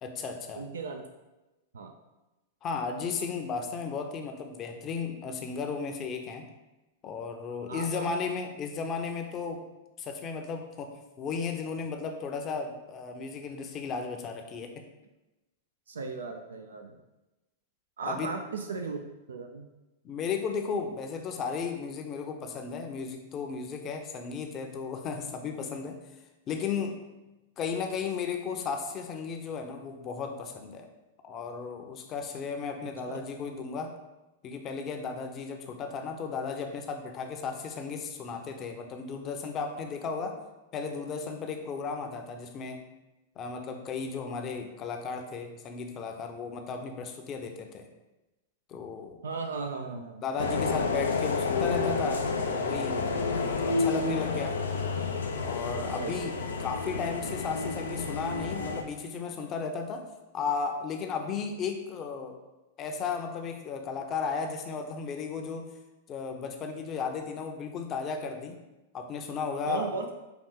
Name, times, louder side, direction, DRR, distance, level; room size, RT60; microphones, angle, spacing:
voice 1, 0.0-0.6 2.6-6.5 7.0-9.6 10.0-14.7 18.0-18.3 20.0-26.0 26.5-27.0 27.6-30.9 31.2-33.9 34.4-40.4 40.7-42.8 43.4-47.9 48.7-49.2 50.2-54.6 55.4-60.1 60.3-62.4 62.8-65.7 66.1-68.6 68.9-69.9, left 5 dB, 35° left, 5 dB, 0.7 m, -35 dB
voice 2, 0.5-1.0 1.7-1.9 7.7-8.1 15.9-17.0 18.0-19.0 19.3-19.7 33.0-33.2 49.2-50.2 56.0-56.3 69.7-70.1, right 4 dB, 90° right, 4 dB, 0.4 m, -36 dB
sound 1, 50.4-58.8, left 4 dB, 90° left, 0.5 m, -30 dB
5.8 x 2.5 x 3.7 m, 1.0 s
hypercardioid pair, 115°, 0 cm